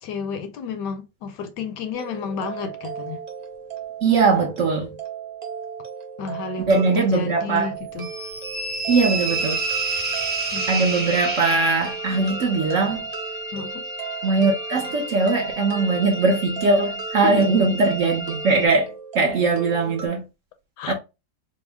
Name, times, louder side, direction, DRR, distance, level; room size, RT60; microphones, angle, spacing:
voice 1, 0.0-3.2 4.4-4.5 6.2-8.1 10.5-10.8 13.5-13.8 17.2-17.5 20.8-20.9, left 5 dB, 75° left, 1.2 m, -31 dB
sound 1, 1.9-20.1, right 8 dB, 90° right, 0.3 m, -36 dB
voice 2, 4.0-4.9 6.7-7.7 8.9-9.6 10.7-13.1 14.2-20.2 20.9-21.0, right 3 dB, 60° right, 0.8 m, -20 dB
sound 2, 8.0-12.2, right 3 dB, 10° right, 0.5 m, -28 dB
sound 3, 9.4-18.7, left 1 dB, 45° left, 0.8 m, -35 dB
4.3 x 2.0 x 3.4 m
omnidirectional pair, 1.9 m